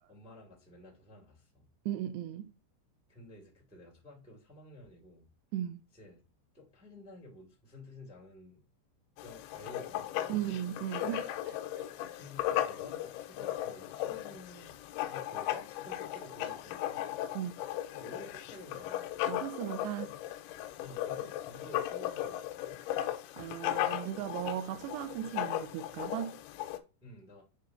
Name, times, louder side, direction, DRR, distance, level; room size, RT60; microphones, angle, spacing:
voice 1, 0.1-1.7 3.1-5.2 5.9-6.2 6.5-8.6 9.2-10.4 12.1-14.8 15.1-17.2 17.9-19.3 20.8-22.7 27.0-27.4, left 1 dB, 5° right, 0.8 m, -52 dB
voice 2, 1.9-2.5 5.5-5.8 10.3-11.6 17.4-17.5 19.3-20.2 23.4-26.4, right 12 dB, 80° right, 2.6 m, -37 dB
Writing, 9.2-26.8, left 13 dB, 90° left, 2.9 m, -37 dB
9.3 x 3.2 x 3.8 m
omnidirectional pair, 5.1 m